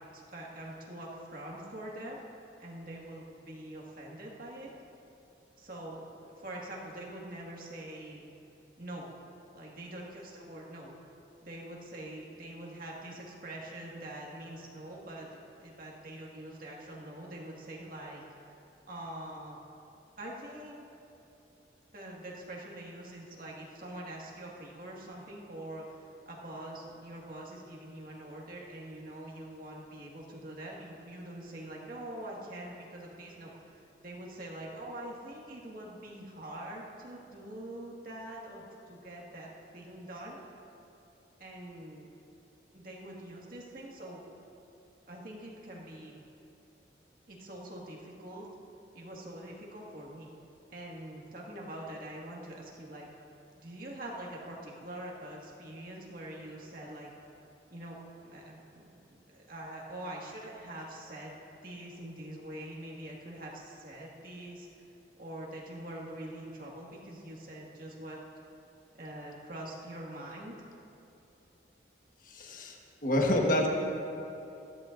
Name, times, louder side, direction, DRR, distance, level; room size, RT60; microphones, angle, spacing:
voice 1, 0.0-2.2 2.6-4.7 5.6-8.3 8.8-9.1 9.5-10.9 11.4-18.2 18.9-19.6 20.2-20.8 21.9-40.4 41.4-42.1 42.7-44.2 45.1-46.2 47.3-48.5 48.9-50.3 50.7-53.1 53.6-57.1 57.7-58.0 58.2-64.9 65.2-68.2 69.0-70.7, right 1 dB, 50° right, -3 dB, 1.9 m, -44 dB
voice 2, 72.2-73.7, left 1 dB, 45° left, 1 dB, 1.4 m, -28 dB
20.5 x 14.0 x 2.6 m, 2.8 s
head